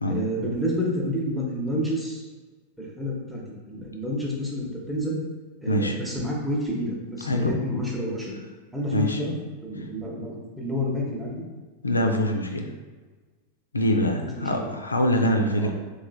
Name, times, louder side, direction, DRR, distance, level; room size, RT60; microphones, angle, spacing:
voice 1, 0.1-2.2 2.8-3.4 3.7-5.2 5.6-8.4 8.7-9.3 9.6-11.4 14.4-14.7 15.6-15.7, equal, ahead, -4 dB, 0.8 m, -29 dB
voice 2, 5.7-6.0 7.3-7.5 8.9-9.2 11.8-12.7 13.7-15.7, left 1 dB, 80° left, 4 dB, 0.4 m, -24 dB
3.6 x 3.1 x 2.3 m, 1.3 s
figure-of-eight pair, 90°, 0 cm